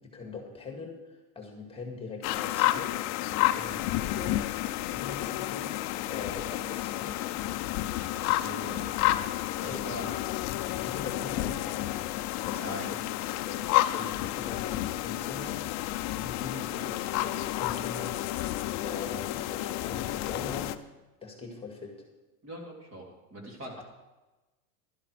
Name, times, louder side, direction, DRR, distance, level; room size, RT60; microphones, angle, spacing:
voice 1, 0.0-3.0 3.4-4.5 4.9-5.8 6.1-7.3 9.6-10.1 10.8-11.9 12.4-13.0 13.3-13.6 13.9-15.6 16.1-20.7 21.2-22.1, left 4 dB, 15° left, 2 dB, 2.2 m, -42 dB
sound 1, 2.2-20.8, left 15 dB, 40° left, 0.6 m, -31 dB
voice 2, 7.9-8.9 9.6-10.1 12.6-12.8 22.4-23.8, equal, 30° right, 0 dB, 3.3 m, -42 dB
12.0 x 11.5 x 5.0 m, 1.1 s
supercardioid pair, 135°, 43 cm